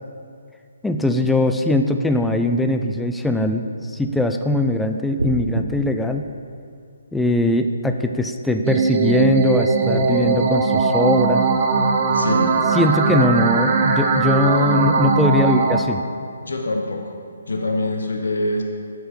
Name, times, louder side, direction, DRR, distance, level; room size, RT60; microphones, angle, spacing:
voice 1, 0.8-6.3 7.1-11.5 12.7-16.0, left 2 dB, 5° left, 6 dB, 0.4 m, -21 dB
sound 1, 5.2-5.7, right 1 dB, 90° right, 0.7 m, -25 dB
sound 2, 8.6-15.8, right 4 dB, 35° right, 1.0 m, -19 dB
voice 2, 12.1-12.5 16.4-17.0 17.5-18.6, left 2 dB, 75° left, 3 dB, 1.0 m, -24 dB
7.8 x 5.9 x 5.2 m, 2.3 s
figure-of-eight pair, 140°, 0 cm